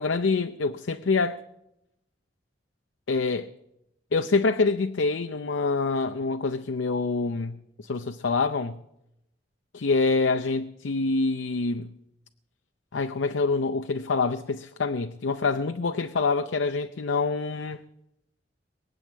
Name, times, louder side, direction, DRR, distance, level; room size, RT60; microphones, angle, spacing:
voice 1, 0.0-1.4 3.1-3.5 4.1-8.8 9.7-11.9 12.9-17.8, left 4 dB, 90° left, 0.6 m, -26 dB
22.5 x 8.4 x 7.4 m
head